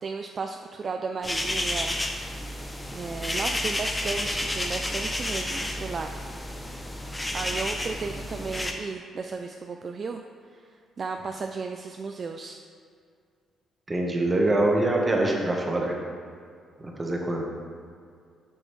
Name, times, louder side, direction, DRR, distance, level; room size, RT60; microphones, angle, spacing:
voice 1, 0.0-2.0 2.9-6.1 7.3-10.2 10.5-12.6, right 4 dB, 45° right, 4 dB, 0.3 m, -34 dB
sound 1, 1.2-8.7, left 1 dB, 15° left, 0.7 m, -31 dB
voice 2, 13.9-16.0 17.0-17.5, right 2 dB, 20° right, 0 dB, 1.1 m, -24 dB
6.4 x 6.2 x 3.2 m, 2.2 s
cardioid pair, 90°, 0 cm